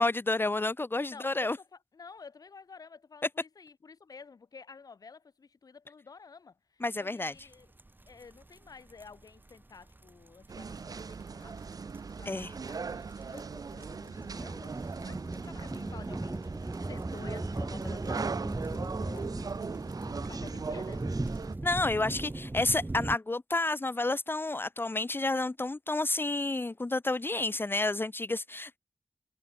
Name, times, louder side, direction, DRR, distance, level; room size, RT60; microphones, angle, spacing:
voice 1, 0.0-1.6 6.8-7.3 12.3-12.5 21.6-28.8, left 2 dB, 35° left, 1.3 m, -30 dB
voice 2, 1.1-7.7 8.1-11.8 12.2-21.1 22.0-22.3, left 5 dB, 85° left, 5.8 m, -51 dB
sound 1, 7.5-7.6 7.8-23.2, right 2 dB, 30° right, 3.6 m, -38 dB
sound 2, 10.5-21.6, right 5 dB, 80° right, 2.4 m, -39 dB
wide cardioid pair, 60°, 6 cm